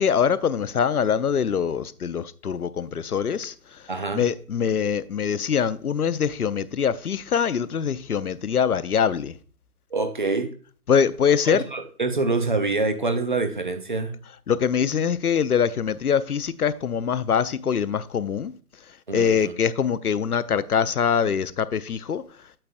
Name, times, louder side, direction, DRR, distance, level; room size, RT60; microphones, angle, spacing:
voice 1, 0.0-3.5 4.1-9.3 10.9-11.6 14.5-18.6 19.1-22.2, left 7 dB, 70° left, 0.6 m, -23 dB
voice 2, 3.9-4.2 9.9-10.5 11.5-14.1 19.1-19.5, right 3 dB, 30° right, 0.6 m, -26 dB
8.8 x 7.7 x 2.5 m
figure-of-eight pair, 145°, 47 cm